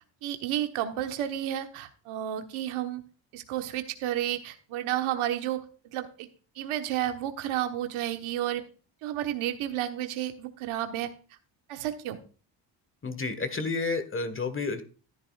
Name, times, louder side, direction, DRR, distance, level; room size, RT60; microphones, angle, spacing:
voice 1, 0.2-3.0 3.3-5.6 5.9-6.3 6.5-8.6 9.0-11.1 11.7-12.2, right 12 dB, 75° right, 7 dB, 1.3 m, -31 dB
voice 2, 13.0-14.8, left 3 dB, 25° left, 11 dB, 1.4 m, -30 dB
14.0 x 10.0 x 2.4 m, 0.37 s
supercardioid pair, 75°, 49 cm